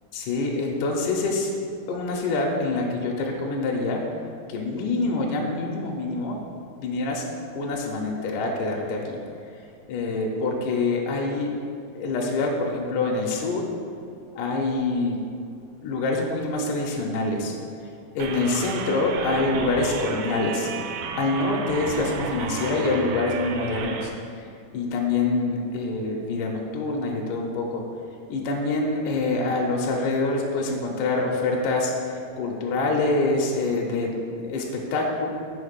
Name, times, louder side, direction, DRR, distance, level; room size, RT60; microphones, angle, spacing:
voice 1, 0.1-1.5 1.9-4.0 4.5-6.4 6.8-7.3 7.6-9.2 9.9-11.5 11.9-13.7 14.4-15.2 15.8-17.5 18.2-20.7 21.2-24.5 24.7-27.8 28.3-35.3, left 3 dB, 80° left, -1 dB, 2.0 m, -25 dB
sound 1, 18.2-24.1, right 5 dB, 85° right, 1.8 m, -33 dB
6.5 x 4.6 x 5.1 m, 2.3 s
omnidirectional pair, 4.1 m